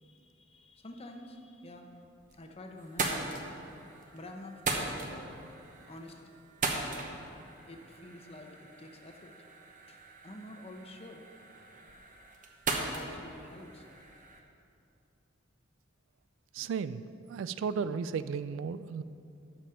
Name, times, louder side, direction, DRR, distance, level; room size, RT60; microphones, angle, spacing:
voice 1, 0.0-1.9 2.4-3.2 4.1-5.4 5.9-6.2 7.7-9.3 9.9-11.2 12.0-12.2 12.8-13.8, left 1 dB, 30° left, 3 dB, 0.8 m, -48 dB
sound 1, 1.9-2.5 2.8-14.4, right 3 dB, 45° right, 1.0 m, -39 dB
voice 2, 16.5-17.0 17.3-19.0, right 6 dB, 70° right, 14 dB, 0.3 m, -34 dB
12.5 x 5.2 x 5.7 m, 2.6 s
head